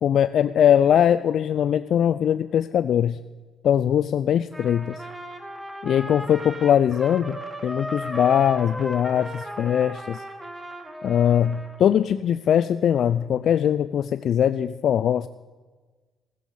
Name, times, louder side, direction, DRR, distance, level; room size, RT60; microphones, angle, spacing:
voice 1, 0.0-3.2 3.6-5.0 5.8-10.2 11.0-15.3, left 9 dB, 65° left, 12 dB, 0.4 m, -21 dB
Trumpet, 4.5-11.8, right 1 dB, 15° right, 1.7 m, -36 dB
15.0 x 13.5 x 5.4 m, 1.4 s
cardioid pair, 90°, 0 cm